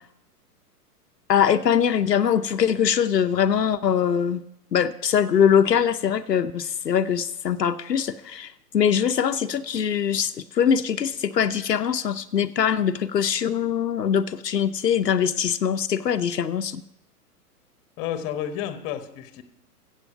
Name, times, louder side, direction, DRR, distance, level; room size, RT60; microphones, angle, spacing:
voice 1, 1.3-4.4 4.7-16.8, left 8 dB, 85° left, 9 dB, 0.7 m, -22 dB
voice 2, 18.0-19.4, left 10 dB, 30° left, 10 dB, 1.3 m, -31 dB
14.5 x 8.2 x 5.7 m, 0.83 s
figure-of-eight pair, 110°, 48 cm